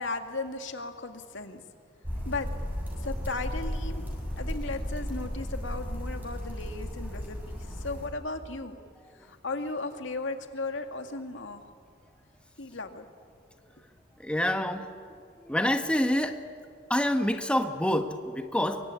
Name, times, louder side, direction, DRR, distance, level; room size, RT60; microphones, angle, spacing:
voice 1, 0.0-1.6 2.2-2.5 3.0-4.0 4.4-8.8 9.1-11.7 12.6-13.1, left 3 dB, 80° left, 6 dB, 2.1 m, -36 dB
sound 1, 2.0-8.1, equal, 10° right, 7.4 m, -34 dB
voice 2, 14.2-14.9 15.5-16.4 16.9-18.9, left 1 dB, 5° left, 6 dB, 1.2 m, -27 dB
25.0 x 23.5 x 9.8 m, 2.2 s
head